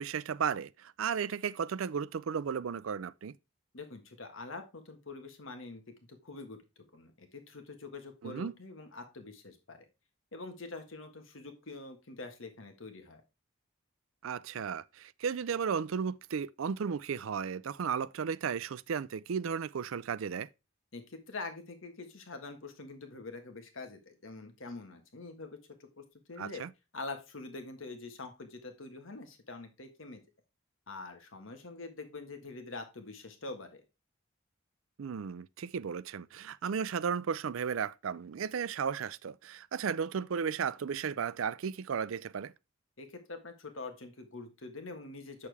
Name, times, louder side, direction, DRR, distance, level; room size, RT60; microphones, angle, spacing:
voice 1, 0.0-3.4 8.2-8.5 14.2-20.5 26.4-26.7 35.0-42.5, right 6 dB, 85° right, 0.4 m, -34 dB
voice 2, 3.7-5.8 6.1-6.6 6.9-9.8 10.3-13.2 20.9-26.6 26.9-30.2 30.9-33.8 43.0-45.5, left 3 dB, 80° left, 1.5 m, -45 dB
8.5 x 6.6 x 3.4 m
head